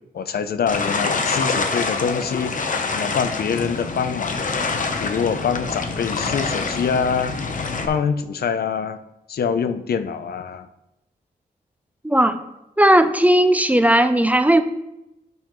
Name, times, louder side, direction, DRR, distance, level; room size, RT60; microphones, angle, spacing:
voice 1, 0.1-4.4 5.0-7.4 7.9-9.0 9.3-10.7, left 6 dB, 80° left, 11 dB, 0.5 m, -25 dB
sound 1, 0.7-7.9, left 4 dB, 55° left, 0.8 m, -26 dB
voice 2, 12.0-12.4 12.8-14.6, right 1 dB, 10° right, 9 dB, 0.4 m, -16 dB
12.0 x 5.5 x 3.0 m, 0.92 s
wide cardioid pair, 115°, 16 cm